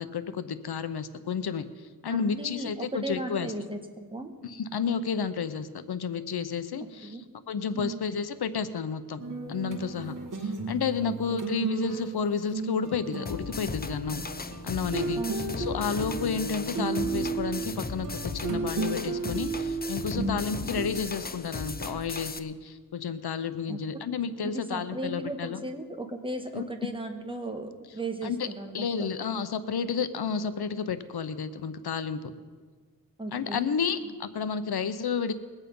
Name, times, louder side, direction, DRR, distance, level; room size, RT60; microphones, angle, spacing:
voice 1, 0.0-1.6 2.0-3.5 4.4-7.2 7.5-14.2 14.6-15.2 15.6-25.6 26.5-26.6 28.2-28.5 28.7-32.3 33.3-35.3, left 6 dB, 85° left, 12 dB, 0.8 m, -31 dB
voice 2, 2.1-4.3 7.0-7.2 7.7-8.0 11.0-11.4 15.2-15.3 23.7-24.0 24.4-29.1 33.2-33.7 34.0-34.1, right 2 dB, 15° right, 3 dB, 1.3 m, -36 dB
sound 1, 9.2-20.9, right 4 dB, 55° right, 1.8 m, -34 dB
sound 2, 13.3-22.4, left 4 dB, 25° left, 0.5 m, -37 dB
21.5 x 8.3 x 5.4 m, 1.5 s
wide cardioid pair, 105°, 37 cm